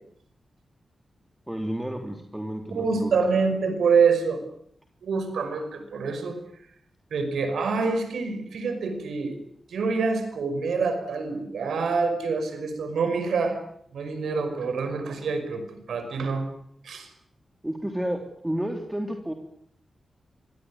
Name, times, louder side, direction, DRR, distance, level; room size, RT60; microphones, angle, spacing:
voice 1, 1.5-3.2 17.6-19.3, right 1 dB, 10° right, 3 dB, 3.3 m, -31 dB
voice 2, 2.7-4.4 5.0-6.4 7.1-9.4 9.7-13.6 13.9-16.5 16.8-17.1, right 4 dB, 90° right, 8 dB, 5.5 m, -26 dB
24.5 x 18.0 x 9.7 m, 0.67 s
cardioid pair, 80°, 0 cm